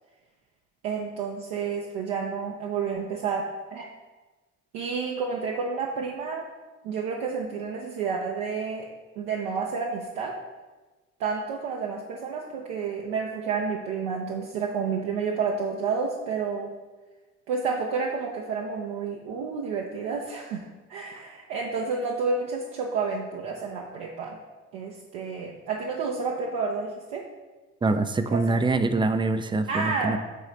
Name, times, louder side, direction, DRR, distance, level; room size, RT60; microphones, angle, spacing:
voice 1, 0.8-3.9 4.7-6.5 6.8-8.9 9.2-10.3 11.2-16.7 17.5-24.4 24.7-27.2 28.3-28.4 29.7-30.1, right 5 dB, 70° right, -1 dB, 0.8 m, -30 dB
voice 2, 27.8-30.2, right 3 dB, 15° right, 10 dB, 0.4 m, -24 dB
6.8 x 3.9 x 4.3 m, 1.2 s
figure-of-eight pair, 45°, 40 cm